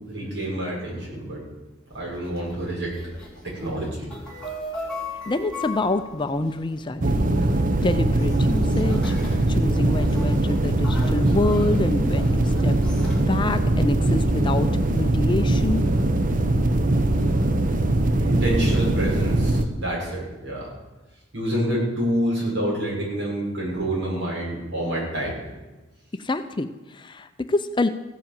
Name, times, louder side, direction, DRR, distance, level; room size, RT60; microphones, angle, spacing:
voice 1, 0.1-1.4 1.9-2.9 3.4-4.1 18.2-20.7 21.3-25.4, right 1 dB, 65° right, -5 dB, 6.2 m, -27 dB
sound 1, 1.9-13.2, left 1 dB, 5° left, 4.2 m, -39 dB
voice 2, 5.3-7.5 7.8-9.1 9.5-12.8 13.2-15.8 26.2-27.9, left 2 dB, 25° left, 9 dB, 0.5 m, -27 dB
sound 2, 7.0-19.7, right 1 dB, 45° right, 0.8 m, -21 dB
16.0 x 7.5 x 7.7 m, 1.1 s
head